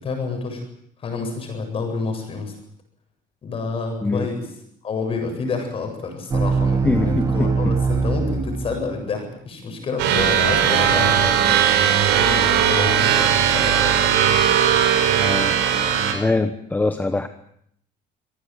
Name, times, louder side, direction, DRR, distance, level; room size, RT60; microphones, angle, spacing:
voice 1, 0.0-0.6 1.0-2.6 3.4-4.4 4.8-11.6 11.9-14.2, left 4 dB, 30° left, 4 dB, 7.7 m, -29 dB
sound 1, 6.3-9.1, right 4 dB, 20° right, 1.3 m, -22 dB
voice 2, 6.8-7.8 15.2-15.6 16.1-17.3, left 3 dB, 10° left, 8 dB, 1.1 m, -23 dB
sound 2, 10.0-16.1, right 9 dB, 90° right, 5.4 m, -18 dB
26.0 x 18.5 x 9.2 m, 0.69 s
cardioid pair, 170°, 18 cm